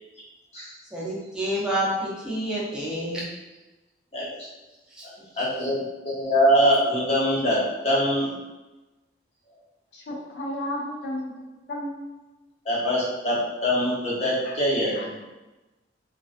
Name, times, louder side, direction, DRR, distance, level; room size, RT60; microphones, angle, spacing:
voice 1, 0.9-3.2 4.9-5.1 5.3-5.5, right 1 dB, 5° right, -6 dB, 0.5 m, -28 dB
voice 2, 5.4-5.8 6.0-7.6 7.8-8.3 12.7-13.4 13.6-15.1, equal, 35° left, -7 dB, 0.7 m, -23 dB
voice 3, 9.9-12.0 14.4-14.5 14.9-15.0, left 1 dB, 70° left, -2 dB, 0.6 m, -33 dB
2.3 x 2.3 x 2.4 m, 1.1 s
head